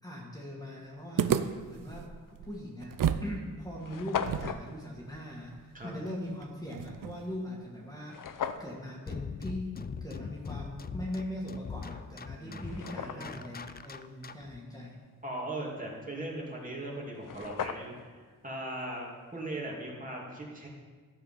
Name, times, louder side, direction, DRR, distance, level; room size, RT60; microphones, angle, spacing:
voice 1, 0.0-8.2 8.6-9.7 10.0-15.0, left 1 dB, 10° left, -3 dB, 1.9 m, -41 dB
sound 1, 1.2-3.3 3.6-3.7 4.2-7.4, right 8 dB, 70° right, 0.6 m, -33 dB
sound 2, 2.3-2.5 3.2-3.3 3.5-3.6 3.8-4.6 8.1-8.7 11.7-11.8 12.3-13.5 16.8-16.9 17.1-18.1, left 8 dB, 70° left, 0.7 m, -37 dB
sound 3, 9.1-14.6, left 5 dB, 30° left, 0.4 m, -41 dB
voice 2, 12.4-13.3 15.2-20.7, right 1 dB, 25° right, -3 dB, 2.6 m, -39 dB
12.5 x 7.3 x 5.8 m, 1.5 s
wide cardioid pair, 105°, 33 cm